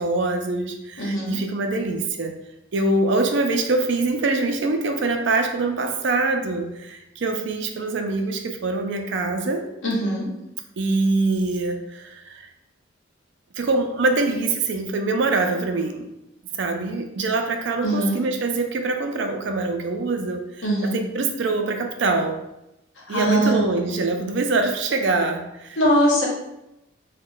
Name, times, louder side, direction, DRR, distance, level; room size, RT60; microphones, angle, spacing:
voice 1, 0.0-2.3 2.7-9.7 10.8-12.5 13.6-16.1 16.6-22.4 23.1-25.8, right 3 dB, 65° right, 5 dB, 0.4 m, -24 dB
voice 2, 1.0-1.4 9.8-10.3 17.8-18.2 20.6-21.0 22.9-23.6 25.8-26.3, equal, 75° left, -2 dB, 0.9 m, -21 dB
3.0 x 2.2 x 3.7 m, 0.88 s
head